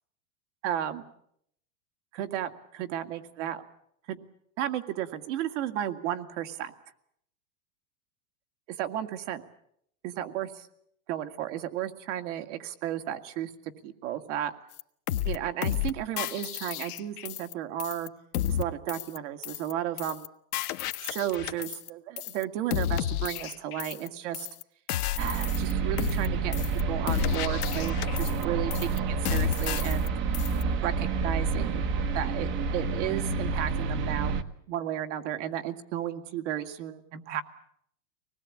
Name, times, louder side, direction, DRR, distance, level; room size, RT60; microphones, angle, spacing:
voice 1, 0.6-1.0 2.1-3.6 4.1-4.3 4.6-6.7 8.8-9.4 10.0-10.7 11.1-13.5 13.8-14.5 15.2-18.1 18.5-20.3 21.0-24.5 25.2-26.6 26.9-30.1 30.8-31.8 32.1-34.4 34.7-37.4, right 11 dB, 55° right, 8 dB, 2.2 m, -33 dB
sound 1, 14.8-14.9 15.1-15.4 15.6-15.9 16.2-17.5 17.8-18.1 18.3-18.6 18.9-19.2 19.4-19.7 20.0-20.3 20.5-21.9 22.2-22.4 22.7-24.1 24.3-24.6 24.9-25.7 26.0-26.3 26.5-26.8 27.1-28.4 28.7-29.0 29.2-30.1 30.3-30.6, left 12 dB, 85° left, 1.4 m, -31 dB
sound 2, 25.2-34.4, right 4 dB, 25° right, 1.1 m, -29 dB
25.0 x 20.0 x 8.6 m, 0.71 s
supercardioid pair, 160°, 44 cm